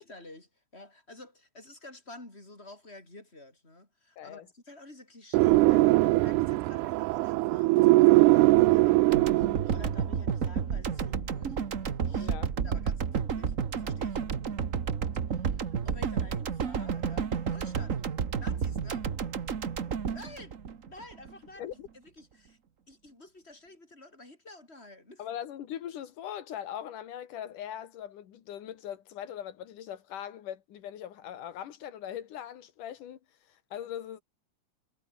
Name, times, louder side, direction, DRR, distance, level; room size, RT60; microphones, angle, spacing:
voice 1, 0.0-11.6 12.0-12.3 12.6-14.5 15.3-18.0 18.4-19.1 20.1-20.6 20.9-21.6 21.9-22.6 22.9-25.2, left 2 dB, 20° left, 7.0 m, -50 dB
voice 2, 4.2-4.5 12.2-12.5 21.6-21.9 25.2-33.2 33.5-34.2, left 10 dB, 90° left, 3.3 m, -40 dB
sound 1, 5.3-10.0, right 20 dB, 80° right, 2.0 m, -21 dB
sound 2, 9.1-21.3, right 7 dB, 65° right, 0.7 m, -31 dB
omnidirectional pair, 3.6 m